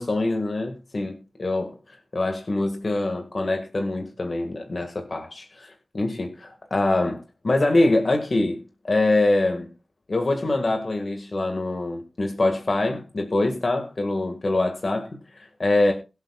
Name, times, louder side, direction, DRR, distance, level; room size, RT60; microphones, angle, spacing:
voice 1, 0.0-8.6 8.8-9.7 10.1-15.9, left 2 dB, 55° left, 1.8 m, -24 dB
22.0 x 7.9 x 2.4 m
wide cardioid pair, 90°, 0 cm